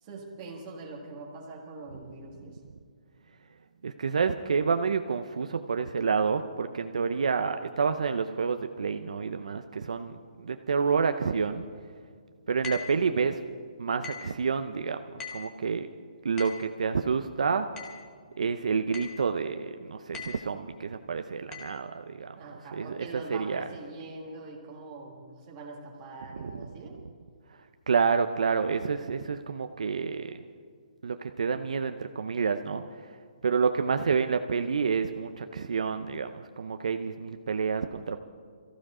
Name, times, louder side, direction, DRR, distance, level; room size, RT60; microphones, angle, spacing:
voice 1, 0.0-2.6 22.4-27.0, right 3 dB, 15° right, -1 dB, 1.7 m, -43 dB
voice 2, 3.8-11.7 12.5-13.4 13.8-15.9 16.2-17.7 18.4-23.6 26.4-26.6 27.5-27.6 27.9-30.4 31.0-33.2 33.4-38.2, right 5 dB, 55° right, 8 dB, 0.6 m, -29 dB
sound 1, 12.6-13.0 14.0-14.4 15.2-15.6 16.4-16.7 17.8-18.1 18.9-19.3 20.1-20.5 21.5-21.7, left 6 dB, 10° left, 0.9 m, -40 dB
22.5 x 15.0 x 3.7 m, 2.1 s
hypercardioid pair, 180°, 4 cm